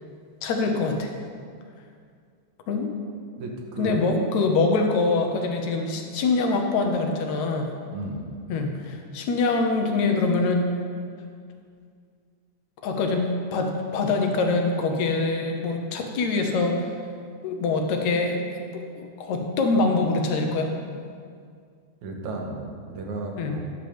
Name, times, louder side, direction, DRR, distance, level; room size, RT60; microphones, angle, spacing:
voice 1, 0.4-1.1 2.7-2.9 3.8-7.7 8.5-10.7 12.8-16.9 17.4-18.4 18.7-20.7 23.4-23.6, left 3 dB, 75° left, 3 dB, 2.3 m, -24 dB
voice 2, 3.4-4.0 7.9-8.3 22.0-23.6, right 2 dB, 75° right, 1 dB, 2.7 m, -34 dB
13.0 x 10.5 x 3.5 m, 2.2 s
omnidirectional pair, 3.4 m